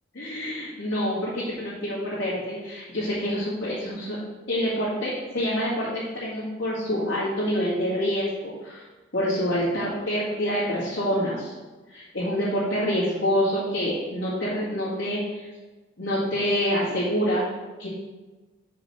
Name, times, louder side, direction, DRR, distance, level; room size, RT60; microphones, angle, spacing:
voice 1, 0.1-4.2 4.5-8.8 9.1-11.5 11.9-15.5 16.0-17.5 17.8-17.9, equal, 75° left, -11 dB, 2.0 m, -27 dB
6.5 x 5.3 x 4.3 m, 1.2 s
head